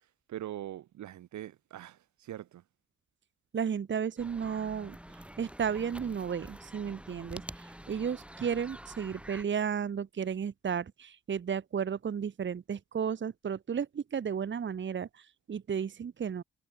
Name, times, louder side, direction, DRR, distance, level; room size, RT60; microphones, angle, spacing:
voice 1, 0.3-2.6, right 12 dB, 70° right, 1.8 m, -42 dB
voice 2, 3.5-5.0 5.4-16.4, right 7 dB, 40° right, 1.4 m, -33 dB
sound 1, 4.2-9.4, right 1 dB, 5° right, 6.9 m, -47 dB
cardioid pair, 90°, 30 cm